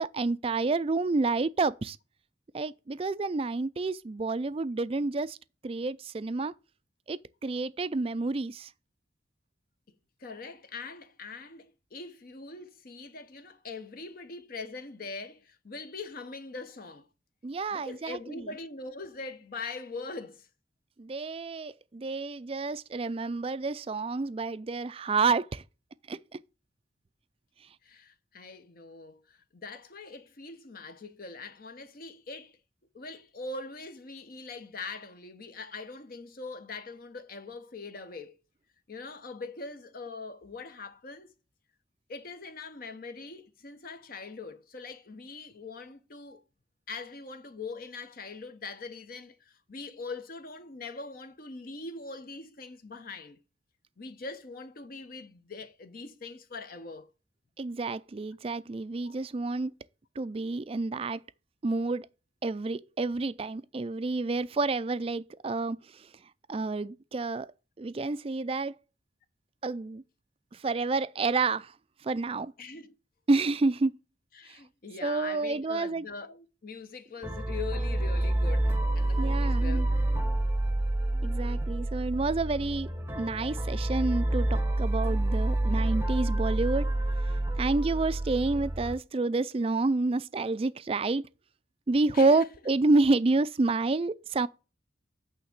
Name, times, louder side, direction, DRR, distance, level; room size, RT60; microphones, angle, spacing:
voice 1, 0.0-2.0 2.5-5.4 5.6-6.5 7.1-8.7 17.4-18.2 21.0-25.6 26.1-26.2 57.6-59.7 60.2-61.2 61.6-62.1 62.4-65.8 66.5-67.5 67.8-68.7 69.6-70.0 70.6-71.7 72.0-72.5 73.3-73.9 75.0-76.0 79.2-79.9 81.2-82.9 83.2-86.9 87.6-91.2 91.9-94.5, right 3 dB, 30° right, 0.4 m, -29 dB
voice 2, 10.2-17.1 17.7-20.5 27.8-32.6 32.9-38.4 38.9-41.3 42.1-46.4 46.9-53.4 54.0-57.1 59.0-59.2 72.6-72.9 74.3-80.4 92.1-92.5, left 3 dB, 50° left, 0.7 m, -42 dB
sound 1, 77.2-88.9, right 1 dB, 10° right, 0.7 m, -28 dB
8.7 x 3.4 x 6.5 m
head